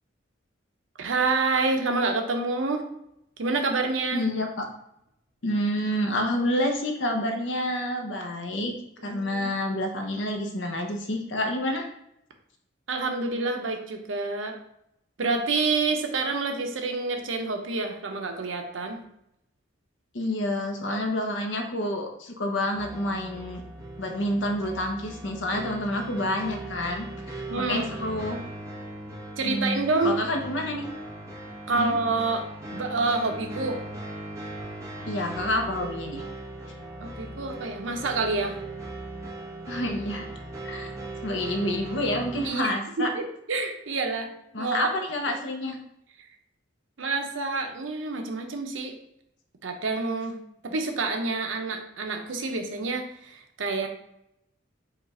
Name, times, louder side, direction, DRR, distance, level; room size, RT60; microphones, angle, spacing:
voice 1, 1.0-2.9 3.4-4.2 9.0-9.5 12.9-14.6 15.2-19.0 27.5-27.9 29.4-30.2 31.7-33.8 37.0-38.6 42.4-42.7 43.0-43.2 43.5-44.8 47.0-48.9 49.6-50.4 50.6-53.9, right 3 dB, 90° right, 4 dB, 0.7 m, -28 dB
voice 2, 4.1-4.7 5.4-8.7 9.0-11.9 20.1-23.6 24.0-28.4 29.4-30.9 31.7-32.0 35.1-36.2 39.7-40.3 40.6-40.9 41.2-43.1 44.5-45.8, left 1 dB, 75° left, 3 dB, 0.8 m, -28 dB
sound 1, 22.7-42.5, right 2 dB, 15° right, 1.0 m, -39 dB
5.0 x 2.4 x 4.2 m, 0.78 s
head